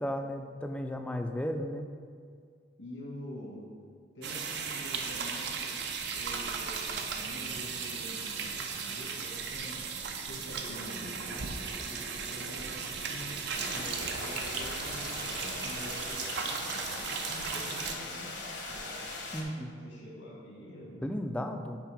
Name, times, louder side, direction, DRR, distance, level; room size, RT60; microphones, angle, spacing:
voice 1, 0.0-1.9 19.3-19.7 21.0-21.8, equal, 5° left, 5 dB, 0.3 m, -34 dB
voice 2, 2.8-3.7 4.2-5.8 6.1-9.8 10.2-16.8 17.2-19.0 19.8-21.1, left 1 dB, 85° left, -6 dB, 1.8 m, -46 dB
sound 1, 4.2-18.0, right 5 dB, 65° right, 0.6 m, -36 dB
sound 2, 13.5-19.4, left 3 dB, 70° left, 1.0 m, -40 dB
5.7 x 4.7 x 5.2 m, 2.1 s
head